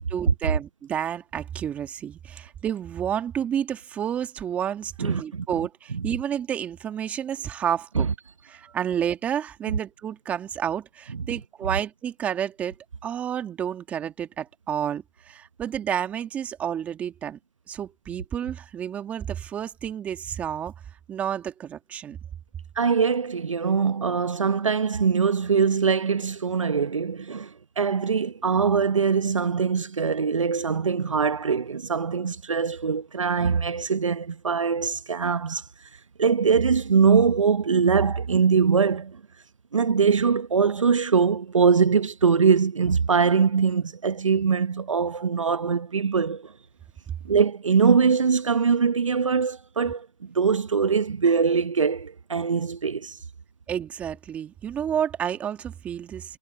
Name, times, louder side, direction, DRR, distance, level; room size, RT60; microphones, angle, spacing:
voice 1, 0.1-8.1 8.4-12.7 13.0-17.4 17.7-20.7 21.1-22.2 53.7-56.4, right 9 dB, 10° right, 2.1 m, -30 dB
voice 2, 5.0-5.4 8.0-8.1 22.8-35.6 36.2-39.2 39.7-46.5 47.2-50.1 50.3-53.2, right 5 dB, 60° right, 1.0 m, -22 dB
figure-of-eight pair, 155°, 18 cm